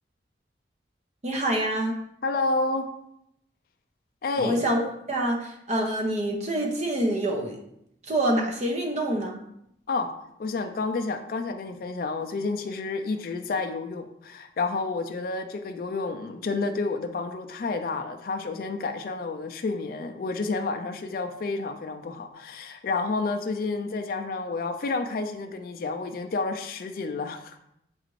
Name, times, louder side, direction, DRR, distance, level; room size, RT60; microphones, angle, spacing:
voice 1, 1.2-1.9 4.4-7.6 8.1-9.3, right 1 dB, 35° right, 0 dB, 0.7 m, -26 dB
voice 2, 2.2-2.9 4.2-4.6 9.9-10.1 10.4-27.6, left 3 dB, 50° left, 5 dB, 0.3 m, -30 dB
6.8 x 2.4 x 3.1 m, 0.77 s
head